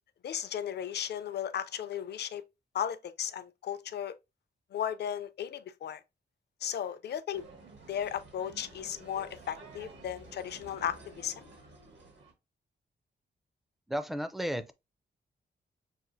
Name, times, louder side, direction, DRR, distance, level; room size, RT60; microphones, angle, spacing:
voice 1, 0.2-2.4 2.7-4.1 4.7-6.0 6.6-7.4 7.9-11.5, left 9 dB, 60° left, 0.4 m, -35 dB
sound 1, 7.3-12.3, right 2 dB, 70° right, 1.2 m, -52 dB
voice 2, 13.9-14.7, equal, ahead, 0.3 m, -33 dB
5.9 x 2.4 x 2.6 m
wide cardioid pair, 125°, 19 cm